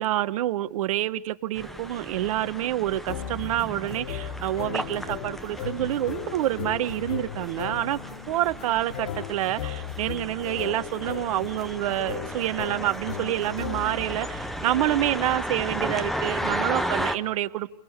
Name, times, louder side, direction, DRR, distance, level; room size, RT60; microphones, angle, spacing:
voice 1, 0.0-8.0 8.3-17.7, right 14 dB, 60° right, 1.2 m, -27 dB
sound 1, 1.5-17.2, equal, ahead, 1.0 m, -35 dB
sound 2, 3.1-14.2, left 9 dB, 70° left, 1.9 m, -37 dB
30.0 x 24.0 x 6.7 m
hypercardioid pair, 135°, 20 cm